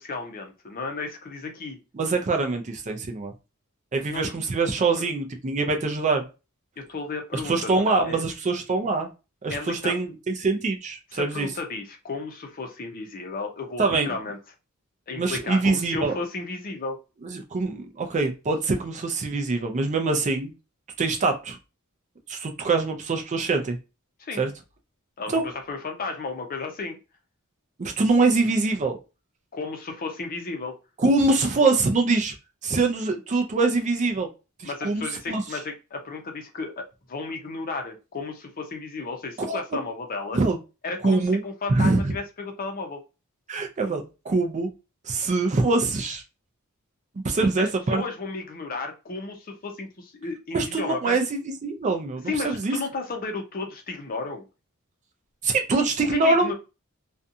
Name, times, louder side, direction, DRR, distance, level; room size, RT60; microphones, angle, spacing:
voice 1, 0.0-1.8 4.1-4.3 4.9-5.1 6.8-8.2 9.5-9.9 11.1-14.4 15.1-17.0 24.2-24.4 25.2-27.0 29.5-30.7 34.6-40.4 40.8-43.0 47.4-51.2 52.3-54.5 56.1-56.5, left 3 dB, 40° left, 4 dB, 0.6 m, -33 dB
voice 2, 1.9-3.3 3.9-6.2 7.4-9.1 9.4-11.5 13.8-14.1 15.2-16.2 17.2-20.5 21.0-21.6 22.3-23.8 24.3-24.5 25.3-25.4 27.8-29.0 31.0-32.3 32.6-34.3 34.6-35.4 39.4-39.6 40.3-40.6 41.0-41.4 41.7-42.1 43.5-44.7 45.0-46.2 47.2-48.0 50.5-52.8 55.4-56.5, right 3 dB, 35° right, 5 dB, 0.4 m, -24 dB
2.6 x 2.3 x 2.6 m, 0.29 s
head